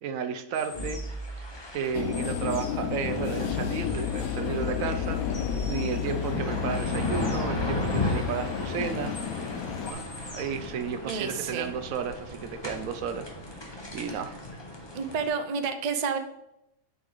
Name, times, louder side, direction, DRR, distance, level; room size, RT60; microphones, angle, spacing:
voice 1, 0.0-1.0 1.7-9.2 9.9-10.0 10.3-14.4, right 7 dB, 70° right, 10 dB, 1.0 m, -33 dB
sound 1, 0.5-15.3, left 1 dB, 20° left, 1.0 m, -36 dB
sound 2, 0.7-5.7, equal, 35° left, 2.0 m, -39 dB
sound 3, 1.9-9.9, left 9 dB, 80° left, 1.0 m, -31 dB
voice 2, 11.0-11.8 14.9-16.2, right 6 dB, 45° right, 7 dB, 0.5 m, -30 dB
8.2 x 4.6 x 3.8 m, 0.85 s
omnidirectional pair, 1.5 m